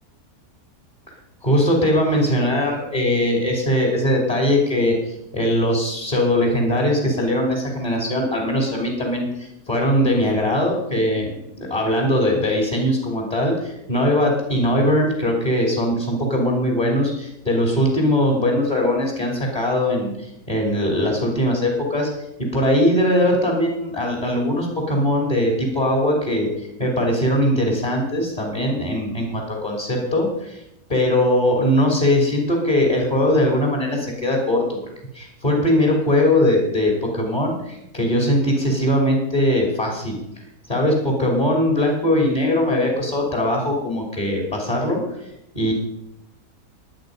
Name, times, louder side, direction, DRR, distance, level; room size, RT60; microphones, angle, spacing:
voice 1, 1.4-11.3 11.6-22.1 22.4-30.6 30.9-34.8 35.1-40.2 40.7-45.3 45.5-45.7, left 1 dB, 25° left, 0 dB, 3.3 m, -20 dB
22.0 x 8.8 x 5.4 m, 0.85 s
omnidirectional pair, 1.6 m